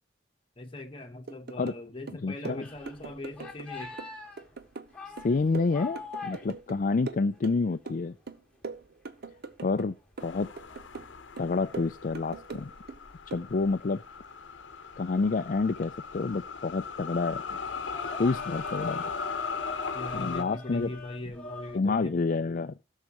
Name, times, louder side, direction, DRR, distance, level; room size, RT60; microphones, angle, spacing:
voice 1, 0.6-4.0 19.9-22.2, left 1 dB, 30° left, 1.3 m, -40 dB
sound 1, 1.3-1.8 2.1-3.7 4.0-6.8 7.1-8.0 8.3-9.9 10.2-11.1 11.4-13.0 13.3-13.5, right 4 dB, 60° right, 0.8 m, -41 dB
voice 2, 2.2-2.6 5.2-8.1 9.6-9.9 10.2-10.5 11.4-12.7 13.3-14.0 15.0-17.4 18.2-19.0 20.1-20.9 21.7-22.7, left 3 dB, 45° left, 0.4 m, -28 dB
sound 2, 2.6-7.8 8.3-8.4 8.6-21.8, left 3 dB, 5° left, 2.4 m, -45 dB
sound 3, 10.2-20.4, left 5 dB, 90° left, 0.8 m, -38 dB
16.5 x 6.5 x 3.0 m
head